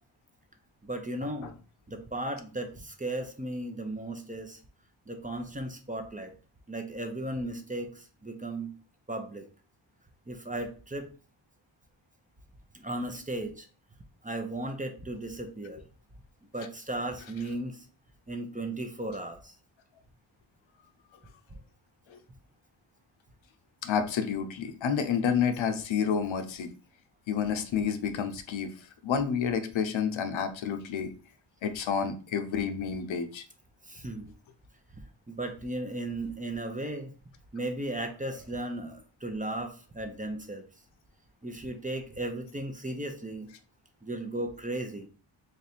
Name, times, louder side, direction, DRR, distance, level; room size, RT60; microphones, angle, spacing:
voice 1, 0.8-1.5 1.9-4.6 5.1-6.3 6.7-8.7 9.1-9.5 10.3-11.1 12.7-13.7 14.2-15.8 16.5-17.9 18.3-19.5 33.9-34.3 35.3-37.1 37.5-40.6 41.4-43.5 44.0-45.1, right 1 dB, 15° right, 4 dB, 0.7 m, -36 dB
voice 2, 23.8-26.7 27.3-28.7 29.0-31.1 31.6-33.4, left 7 dB, 70° left, 8 dB, 0.7 m, -29 dB
3.3 x 2.4 x 4.3 m, 0.38 s
cardioid pair, 50°, 49 cm